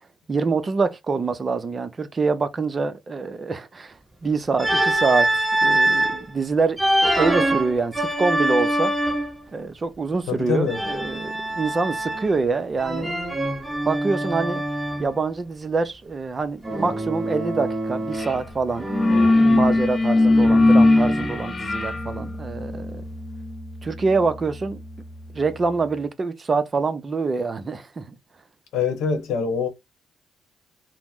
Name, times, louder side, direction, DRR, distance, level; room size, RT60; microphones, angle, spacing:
voice 1, 0.3-3.9 4.2-8.9 9.5-13.2 13.9-14.6 15.0-18.9 19.4-23.0 23.8-24.8 25.3-28.1, right 4 dB, 35° right, 0.6 m, -25 dB
Organ, 4.6-6.2 6.8-9.4 10.7-12.4 12.8-15.1 16.6-18.5 18.8-21.5, right 1 dB, 10° right, 0.9 m, -24 dB
voice 2, 10.3-10.8 19.5-19.8 28.7-29.7, left 5 dB, 90° left, 0.9 m, -25 dB
sound 1, 18.2-18.4 18.7-25.3, left 2 dB, 35° left, 0.5 m, -21 dB
2.9 x 2.0 x 3.5 m
cardioid pair, 90°, 0 cm